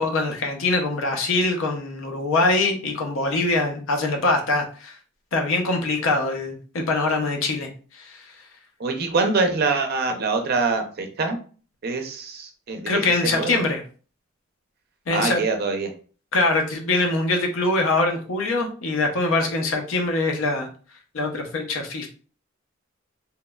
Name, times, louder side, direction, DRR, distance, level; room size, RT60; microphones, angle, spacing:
voice 1, 0.0-4.9 5.3-7.7 7.9-8.2 12.9-13.8 15.1-15.4 16.3-20.7 21.1-22.1, left 2 dB, 75° left, 3 dB, 0.5 m, -23 dB
voice 2, 8.8-11.4 11.8-13.0 13.3-13.6 15.1-15.9, right 3 dB, 50° right, 5 dB, 0.5 m, -24 dB
2.9 x 2.0 x 2.2 m, 0.39 s
head